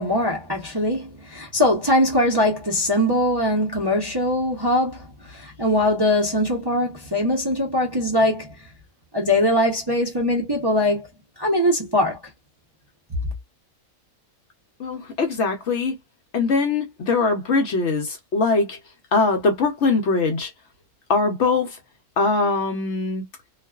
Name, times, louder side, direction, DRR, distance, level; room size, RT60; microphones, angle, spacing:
voice 1, 0.0-8.5 9.1-11.1 11.4-12.2, left 1 dB, 25° right, 0.5 m, -21 dB
voice 2, 14.8-16.0 16.3-18.8 19.1-20.5 21.1-21.8 22.2-23.2, left 3 dB, 60° left, 0.9 m, -22 dB
2.4 x 2.3 x 2.2 m
omnidirectional pair, 1.5 m